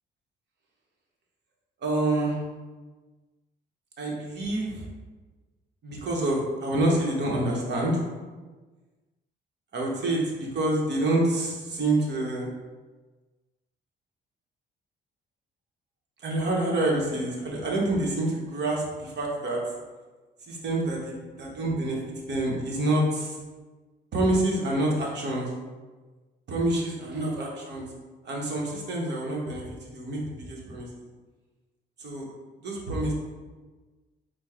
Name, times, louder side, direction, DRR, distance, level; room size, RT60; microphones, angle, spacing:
voice 1, 1.8-2.4 4.0-4.8 5.8-8.0 9.7-12.5 16.2-19.6 20.5-22.0 22.3-23.4 24.1-25.5 26.5-27.9 28.2-29.7 29.9-30.9 32.0-32.3 32.6-33.1, right 1 dB, 60° right, -3 dB, 1.2 m, -27 dB
4.6 x 2.3 x 4.3 m, 1.3 s
cardioid pair, 90°, 20 cm